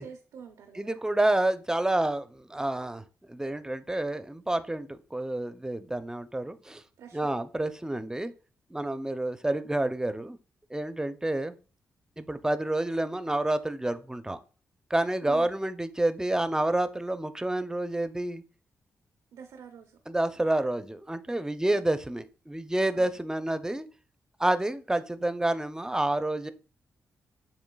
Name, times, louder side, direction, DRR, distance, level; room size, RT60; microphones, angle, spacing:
voice 1, 0.0-1.0 7.0-7.3 15.2-15.6 19.3-20.0 21.7-21.9 22.9-23.2, right 7 dB, 85° right, 6 dB, 0.5 m, -47 dB
voice 2, 0.7-6.8 7.1-8.3 8.7-10.4 10.7-11.5 12.2-14.4 14.9-18.4 20.1-23.9 24.4-26.5, right 1 dB, 10° right, 11 dB, 0.5 m, -29 dB
7.1 x 3.0 x 2.2 m, 0.37 s
cardioid pair, 60°, 6 cm